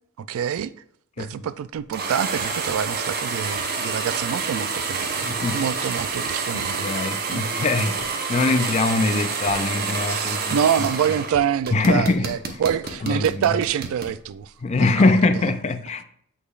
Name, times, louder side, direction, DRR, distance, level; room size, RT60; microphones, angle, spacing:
voice 1, 0.2-0.7 1.2-7.0 7.3-7.5 10.1-14.9, right 8 dB, 70° right, 0.3 m, -26 dB
sound 1, 1.9-11.3 11.6-14.1, right 4 dB, 45° right, 0.8 m, -28 dB
sound 2, 5.2-6.1 8.0-8.5 9.4-10.0 11.3-11.7 12.8-13.3, left 2 dB, 50° left, 1.7 m, -42 dB
voice 2, 5.2-5.6 6.5-8.0 8.3-10.6 11.7-12.3 13.0-13.6 14.6-16.0, left 3 dB, 30° left, 0.4 m, -22 dB
8.3 x 5.0 x 2.4 m
head